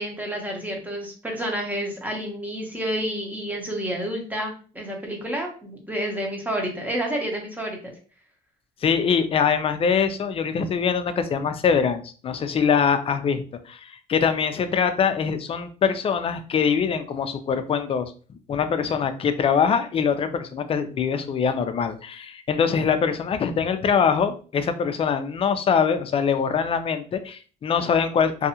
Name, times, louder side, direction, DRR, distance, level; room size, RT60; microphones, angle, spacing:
voice 1, 0.0-7.9, equal, 10° right, 1 dB, 0.9 m, -29 dB
voice 2, 8.8-18.1 18.5-28.5, left 6 dB, 35° left, 9 dB, 0.4 m, -23 dB
2.7 x 2.3 x 2.7 m, 0.39 s
cardioid pair, 110°, 17 cm